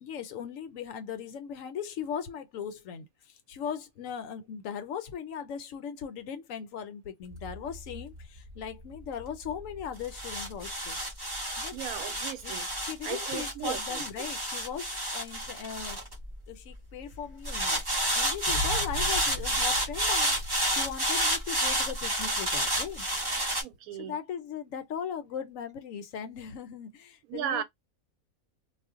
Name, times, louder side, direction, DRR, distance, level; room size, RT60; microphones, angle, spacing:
voice 1, 0.0-11.0 11.6-11.8 12.4-16.0 16.5-17.8 18.1-23.1 23.9-27.6, left 7 dB, 75° left, 0.9 m, -38 dB
sound 1, 7.3-16.8 17.5-23.6, right 1 dB, 20° right, 0.7 m, -30 dB
voice 2, 11.7-12.7 13.0-14.3 23.6-24.2 27.3-27.6, right 10 dB, 90° right, 1.1 m, -36 dB
sound 2, 18.5-21.4, equal, 60° right, 0.9 m, -38 dB
2.4 x 2.1 x 3.5 m
omnidirectional pair, 1.5 m